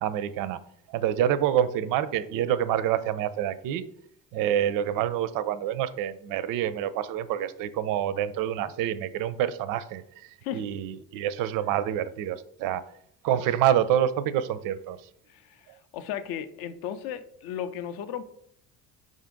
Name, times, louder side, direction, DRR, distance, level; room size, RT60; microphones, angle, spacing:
voice 1, 0.0-0.6 0.9-3.8 4.3-12.8 13.2-15.0, right 10 dB, 45° right, 15 dB, 0.4 m, -27 dB
voice 2, 15.3-15.7 15.9-18.2, left 9 dB, 50° left, 11 dB, 0.6 m, -35 dB
5.1 x 2.5 x 3.7 m, 0.70 s
hypercardioid pair, 60°, 48 cm